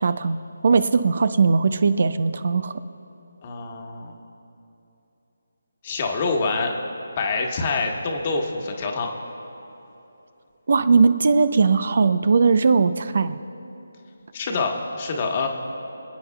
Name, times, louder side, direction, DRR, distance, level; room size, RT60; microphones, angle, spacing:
voice 1, 0.0-0.4 0.6-2.7 10.7-13.4, right 4 dB, 50° right, 13 dB, 0.5 m, -19 dB
voice 2, 3.4-4.1 5.8-6.7 7.2-9.1 14.3-15.5, left 4 dB, 30° left, 1 dB, 1.4 m, -26 dB
26.0 x 9.3 x 2.3 m, 3.0 s
figure-of-eight pair, 155°, 0 cm